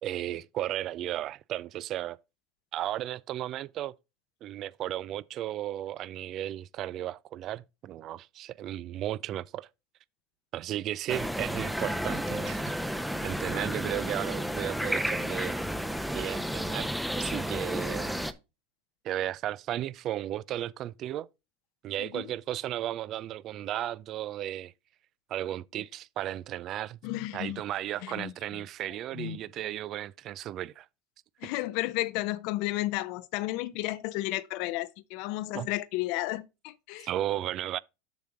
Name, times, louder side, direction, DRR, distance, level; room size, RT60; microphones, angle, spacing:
voice 1, 0.0-2.2 2.7-3.9 4.4-9.7 10.5-12.7 13.2-15.6 16.1-16.9 17.2-18.2 19.0-21.3 21.8-24.7 25.3-27.0 27.3-30.9 35.5-35.7 37.0-37.8, right 12 dB, 45° right, 0.4 m, -34 dB
sound 1, 11.1-18.3, equal, ahead, 0.7 m, -32 dB
voice 2, 22.0-22.3 27.0-27.6 28.0-28.3 29.1-29.4 31.4-37.1, left 18 dB, 65° left, 0.6 m, -33 dB
7.1 x 5.8 x 3.8 m
hypercardioid pair, 95°, 0 cm